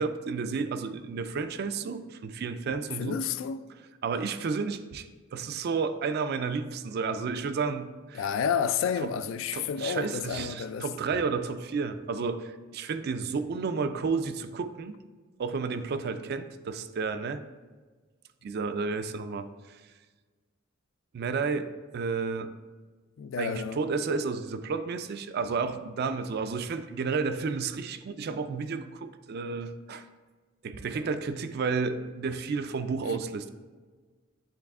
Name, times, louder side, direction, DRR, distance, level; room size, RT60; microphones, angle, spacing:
voice 1, 0.0-3.2 4.0-8.3 9.0-9.1 9.5-14.9 15.4-17.4 18.4-19.8 21.1-22.5 23.4-30.1 30.6-33.5, right 4 dB, 55° right, 0.4 m, -31 dB
voice 2, 3.0-3.6 8.1-10.9 23.2-23.8, left 7 dB, 75° left, 0.3 m, -30 dB
10.0 x 3.3 x 3.6 m
head